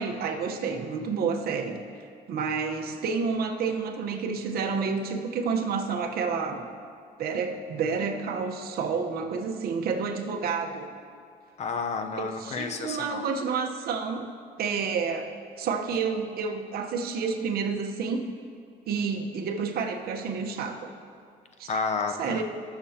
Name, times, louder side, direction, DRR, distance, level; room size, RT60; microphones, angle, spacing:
voice 1, 0.0-1.8 2.3-6.6 7.2-10.9 12.1-14.3 14.6-15.3 15.6-18.3 18.9-20.9 21.6-21.7 22.2-22.4, right 5 dB, 65° right, 3 dB, 1.0 m, -29 dB
voice 2, 11.6-13.2 21.7-22.4, left 4 dB, 40° left, 6 dB, 0.8 m, -31 dB
17.5 x 7.0 x 2.9 m, 2.2 s
cardioid pair, 110°, 17 cm